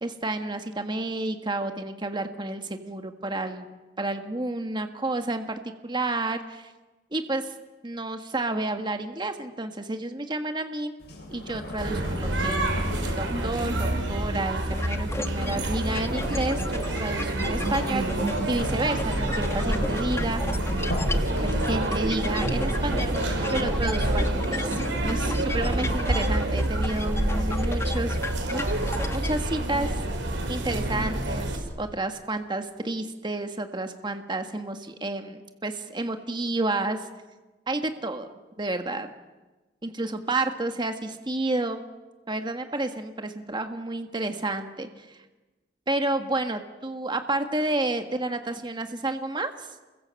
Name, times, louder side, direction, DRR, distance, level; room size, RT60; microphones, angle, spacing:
voice 1, 0.0-3.7 4.0-6.7 7.1-7.5 7.8-10.9 11.3-12.8 13.2-20.4 21.4-23.1 23.5-28.2 28.5-28.6 29.1-30.0 30.5-37.1 37.7-38.3 38.6-39.1 39.8-41.8 42.3-45.2 45.9-49.7, right 2 dB, 25° right, 6 dB, 1.6 m, -30 dB
sound 1, 11.0-22.0, equal, 60° left, 7.5 m, -36 dB
sound 2, 11.8-31.6, right 1 dB, 85° right, 5.7 m, -27 dB
sound 3, 14.7-29.3, left 2 dB, 15° left, 1.2 m, -36 dB
29.5 x 22.5 x 7.7 m, 1.2 s
head